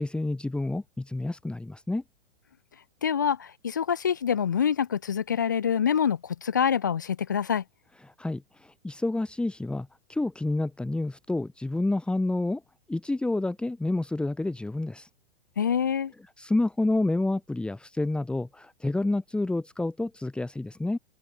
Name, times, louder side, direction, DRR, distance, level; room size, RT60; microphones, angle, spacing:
voice 1, 0.0-2.0 8.0-12.6 12.9-15.1 16.4-21.0, left 2 dB, 5° left, 3.6 m, -29 dB
voice 2, 3.0-7.6 15.6-16.1, left 8 dB, 20° left, 0.4 m, -26 dB
hypercardioid pair, 170°, 35 cm